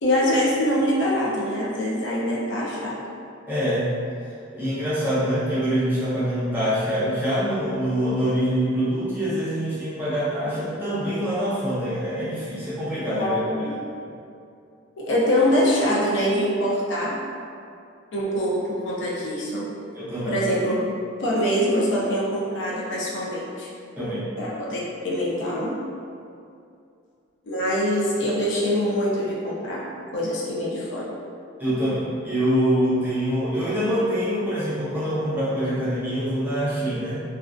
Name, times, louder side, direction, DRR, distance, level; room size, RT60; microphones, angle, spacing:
voice 1, 0.0-3.0 10.5-10.6 13.2-13.7 15.0-17.2 18.1-19.7 20.2-20.9 21.2-23.7 24.4-25.8 27.5-29.9 30.1-31.0, equal, 65° left, -5 dB, 0.5 m, -24 dB
voice 2, 3.5-3.9 4.5-13.4 19.9-20.4 24.0-24.2 31.6-37.2, equal, 10° right, -12 dB, 0.7 m, -25 dB
2.3 x 2.1 x 2.4 m, 2.5 s
head